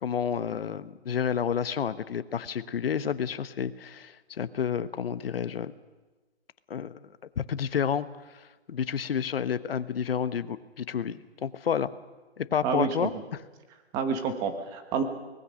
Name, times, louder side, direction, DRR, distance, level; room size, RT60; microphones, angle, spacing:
voice 1, 0.0-5.7 6.7-7.1 7.4-8.1 8.3-11.9 12.4-13.1, left 8 dB, 60° left, 14 dB, 1.2 m, -30 dB
voice 2, 12.6-13.1 13.9-15.0, right 6 dB, 10° right, 7 dB, 0.9 m, -28 dB
24.5 x 19.5 x 6.4 m, 1.2 s
hypercardioid pair, 165°, 33 cm